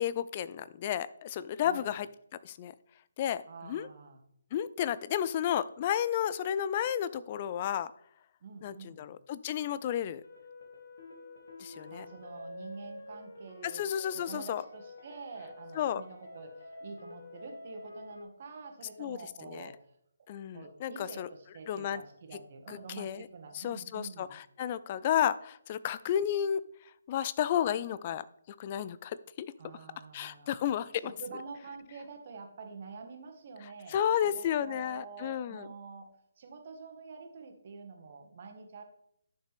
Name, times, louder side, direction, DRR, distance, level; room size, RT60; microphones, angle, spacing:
voice 1, 0.0-2.1 2.4-2.7 3.2-3.9 4.5-7.9 8.6-10.2 11.6-12.1 13.6-14.6 15.8-16.0 19.0-19.7 20.3-21.3 21.7-22.0 22.7-23.3 23.5-26.6 27.1-28.2 28.6-29.5 30.1-31.1 33.9-35.7, left 10 dB, 30° left, 16 dB, 0.4 m, -32 dB
voice 2, 3.5-4.2 8.4-9.1 11.9-13.8 14.1-19.7 20.5-24.4 29.6-30.7 31.0-34.0 34.2-36.1 36.4-38.8, right 4 dB, 40° right, 4 dB, 1.6 m, -47 dB
sound 1, 10.2-18.2, left 2 dB, 55° left, 2.3 m, -48 dB
11.0 x 6.4 x 3.5 m, 0.72 s
figure-of-eight pair, 145°, 0 cm